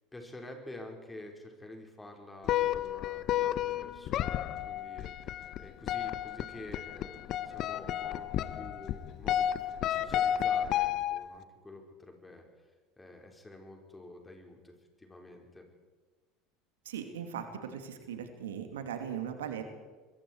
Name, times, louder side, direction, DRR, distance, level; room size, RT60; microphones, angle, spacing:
voice 1, 0.1-12.4 13.0-15.7, left 1 dB, 10° left, 2 dB, 5.0 m, -49 dB
sound 1, 2.4-11.4, left 11 dB, 50° left, 0.9 m, -32 dB
voice 2, 16.8-19.6, right 8 dB, 75° right, 6 dB, 2.5 m, -39 dB
26.5 x 22.0 x 4.8 m, 1.4 s
figure-of-eight pair, 75°, 0 cm